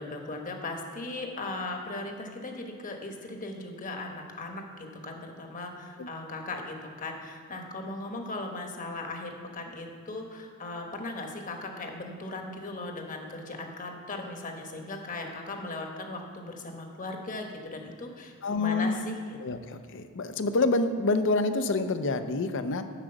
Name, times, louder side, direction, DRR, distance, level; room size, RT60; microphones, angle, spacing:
voice 1, 0.0-19.2, left 2 dB, 35° left, 3 dB, 1.1 m, -38 dB
voice 2, 18.4-19.0 19.4-22.8, left 3 dB, 55° left, 9 dB, 0.6 m, -27 dB
7.5 x 6.1 x 7.8 m, 2.1 s
head